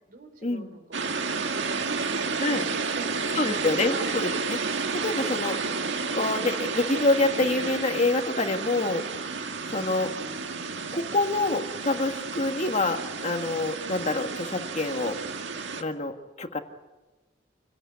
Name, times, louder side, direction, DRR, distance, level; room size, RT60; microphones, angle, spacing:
voice 1, 0.1-3.6 3.9-4.2 8.9-9.0, right 2 dB, 55° right, 8 dB, 4.1 m, -42 dB
sound 1, 0.9-15.8, right 4 dB, 85° right, 1.8 m, -31 dB
voice 2, 3.3-5.6 6.1-9.0 9.7-10.1 10.9-15.2 15.8-16.6, left 2 dB, 40° left, 6 dB, 1.7 m, -26 dB
28.0 x 18.0 x 9.6 m, 1.1 s
head